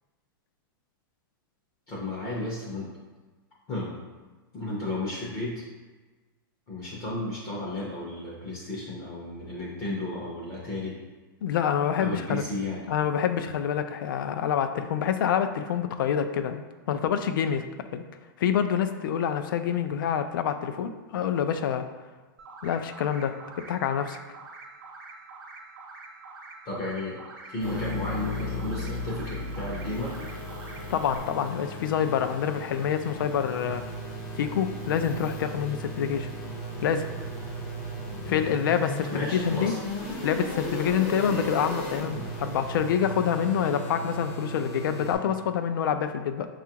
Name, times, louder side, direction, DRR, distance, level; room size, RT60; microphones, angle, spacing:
voice 1, 1.9-2.9 3.7-3.9 4.5-5.6 6.7-11.0 12.0-12.9 26.6-30.2 38.1-38.5 39.1-39.8 41.2-41.5, left 2 dB, 25° left, -5 dB, 0.6 m, -33 dB
voice 2, 11.4-12.4 12.9-17.6 17.9-18.0 18.4-21.8 22.6-24.2 30.9-33.8 34.3-36.3 36.8-37.1 38.3-39.7 40.2-46.5, left 8 dB, 65° left, 9 dB, 0.4 m, -27 dB
sound 1, 22.4-31.2, right 3 dB, 70° right, 0.7 m, -46 dB
sound 2, 27.6-45.1, equal, 40° left, 0.9 m, -36 dB
5.8 x 2.4 x 2.8 m, 1.3 s
supercardioid pair, 170°, 12 cm